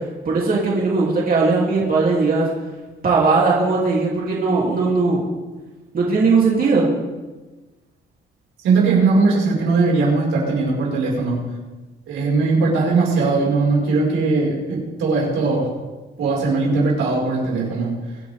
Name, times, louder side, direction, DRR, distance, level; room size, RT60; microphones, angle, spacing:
voice 1, 0.2-2.5 3.0-5.2 5.9-6.9, right 4 dB, 45° right, -4 dB, 3.2 m, -18 dB
voice 2, 8.6-11.4 12.1-15.7 16.2-17.9, right 3 dB, 90° right, -4 dB, 5.6 m, -19 dB
24.0 x 8.9 x 3.7 m, 1.2 s
cardioid pair, 90°, 20 cm